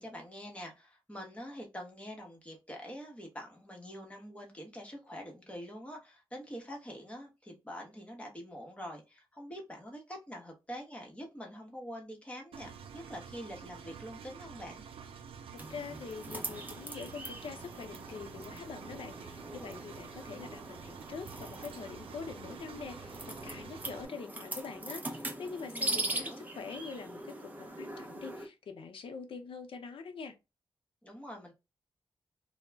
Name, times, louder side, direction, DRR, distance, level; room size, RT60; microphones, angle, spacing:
voice 1, 0.0-14.8 25.7-26.4 31.0-31.5, equal, 15° left, 0.9 m, -45 dB
Engine, 12.5-24.0, right 7 dB, 90° right, 0.4 m, -49 dB
voice 2, 15.5-30.3, left 5 dB, 75° left, 0.5 m, -44 dB
sound 1, 15.6-28.5, right 1 dB, 20° right, 0.6 m, -41 dB
2.2 x 2.0 x 3.3 m
wide cardioid pair, 95°, 9 cm